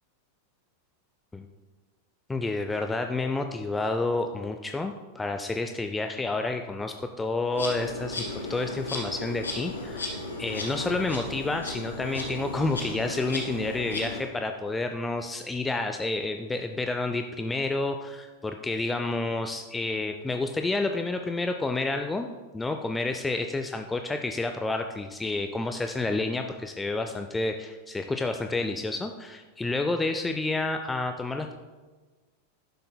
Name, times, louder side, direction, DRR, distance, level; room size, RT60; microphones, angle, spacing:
voice 1, 2.3-10.1 10.4-22.3 22.5-31.5, left 2 dB, 10° left, 5 dB, 0.3 m, -29 dB
Insect, 7.5-14.2, left 2 dB, 75° left, 1.4 m, -35 dB
11.0 x 6.4 x 2.2 m, 1.3 s
figure-of-eight pair, 90°, 0 cm